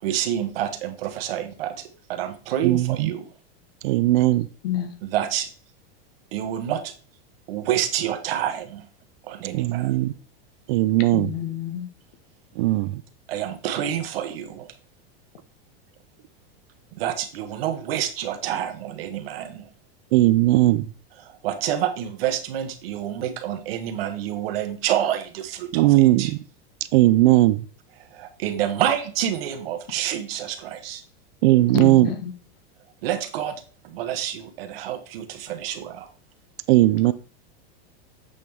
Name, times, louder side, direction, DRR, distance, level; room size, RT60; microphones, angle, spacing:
voice 1, 0.0-3.3 5.0-5.5 6.3-6.9 7.5-8.9 9.3-9.9 13.3-14.7 16.9-19.7 21.2-25.9 26.2-26.3 28.1-31.0 33.0-36.1, right 10 dB, 70° right, 1.4 m, -28 dB
voice 2, 2.6-3.1 3.8-4.5 9.5-10.1 10.7-11.3 12.6-13.0 20.1-20.9 25.7-26.4 26.9-27.7 31.4-32.1 36.7-37.1, right 17 dB, 55° right, 0.5 m, -18 dB
voice 3, 4.6-5.0 11.1-11.9 31.7-32.3, left 10 dB, 70° left, 1.6 m, -29 dB
8.5 x 5.1 x 3.6 m
supercardioid pair, 155°, 30 cm